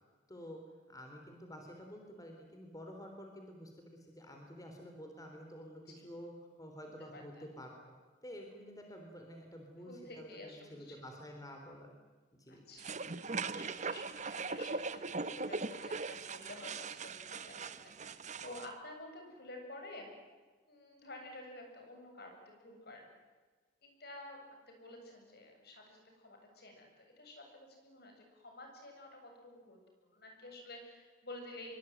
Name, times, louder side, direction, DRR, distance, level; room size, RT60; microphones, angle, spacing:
voice 1, 0.3-0.6 0.9-7.9 8.2-11.9 12.4-12.6, equal, 20° left, 2 dB, 3.8 m, -50 dB
voice 2, 7.1-7.4 9.9-11.0 12.5-20.1 20.7-23.1 23.8-31.7, left 2 dB, 65° left, 3 dB, 7.8 m, -51 dB
sound 1, 12.8-18.7, right 4 dB, 45° right, 1.2 m, -40 dB
24.5 x 24.0 x 9.4 m, 1.3 s
head